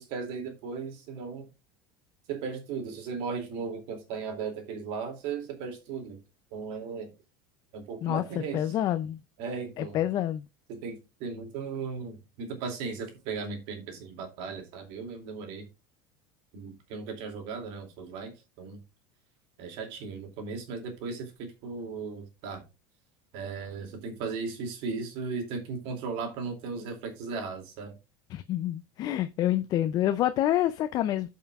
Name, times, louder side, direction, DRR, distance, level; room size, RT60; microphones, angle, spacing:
voice 1, 0.0-1.5 2.3-6.2 6.5-7.1 7.7-8.8 9.4-10.0 10.7-15.7 16.5-18.8 19.6-22.6 23.3-28.0, right 5 dB, 60° right, 2.6 m, -36 dB
voice 2, 8.5-9.2 9.8-10.5 28.3-31.3, left 12 dB, 35° left, 0.4 m, -27 dB
16.0 x 5.5 x 2.4 m
cardioid pair, 150°, 11 cm